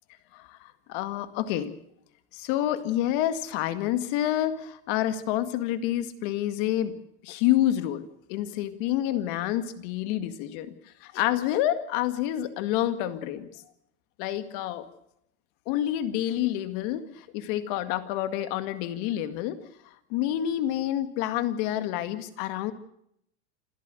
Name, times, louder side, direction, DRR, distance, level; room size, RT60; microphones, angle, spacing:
voice 1, 0.3-1.7 2.3-7.0 7.2-10.7 11.0-13.5 14.2-14.9 15.7-19.6 19.8-22.7, left 12 dB, 55° left, 11 dB, 2.0 m, -28 dB
27.5 x 13.0 x 7.7 m, 0.73 s
supercardioid pair, 155°, 33 cm